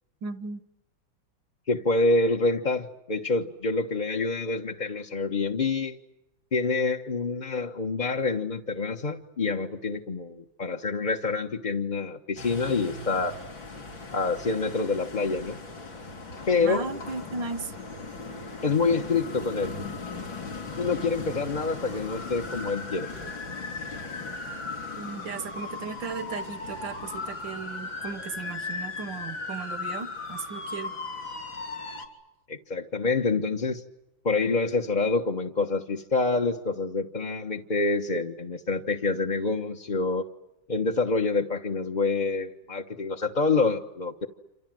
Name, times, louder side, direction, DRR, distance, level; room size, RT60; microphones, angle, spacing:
voice 1, 0.2-0.6 16.6-17.7 25.0-30.9, right 4 dB, 70° right, 11 dB, 1.9 m, -36 dB
voice 2, 1.7-6.0 6.5-13.4 14.1-15.6 16.5-16.9 18.6-19.7 20.8-23.1 32.5-33.8 34.2-40.2 40.7-44.3, left 3 dB, 25° left, 1 dB, 1.2 m, -27 dB
sound 1, 12.4-32.1, left 3 dB, 80° left, 4.6 m, -37 dB
28.0 x 27.0 x 7.8 m, 0.92 s
omnidirectional pair, 2.1 m